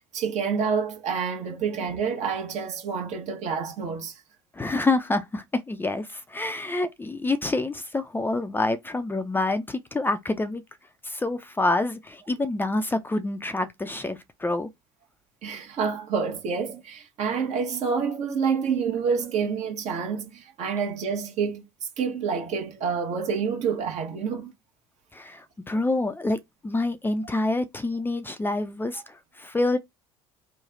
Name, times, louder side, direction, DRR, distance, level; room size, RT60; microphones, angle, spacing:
voice 1, 0.1-4.1 15.4-21.6 22.0-24.5, right 6 dB, 50° right, 1.1 m, -28 dB
voice 2, 4.6-10.6 11.0-14.7 25.1-26.4 26.6-29.8, left 2 dB, 15° left, 0.5 m, -27 dB
3.2 x 2.3 x 3.7 m
hypercardioid pair, 65°, 15 cm